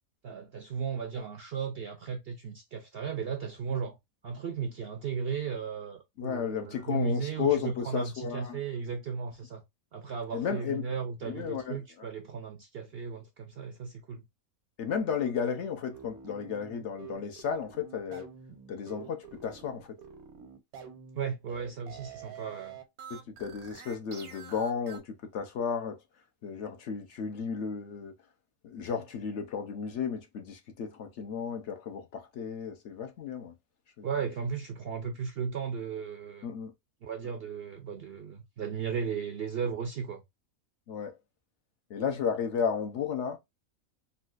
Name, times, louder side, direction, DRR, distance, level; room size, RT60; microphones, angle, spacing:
voice 1, 0.2-4.0 4.2-9.6 9.9-14.2 21.2-22.8 34.0-36.5 37.0-40.2, right 6 dB, 65° right, 0.6 m, -35 dB
voice 2, 6.2-8.6 10.3-10.9 11.2-12.1 14.8-18.3 18.7-19.9 23.1-26.0 26.4-28.1 28.6-33.5 34.0-34.1 36.4-36.7 40.9-41.2 41.9-43.4, left 7 dB, 60° left, 0.9 m, -33 dB
sound 1, 15.9-25.0, right 7 dB, 85° right, 1.3 m, -47 dB
3.9 x 2.3 x 2.3 m
omnidirectional pair, 1.5 m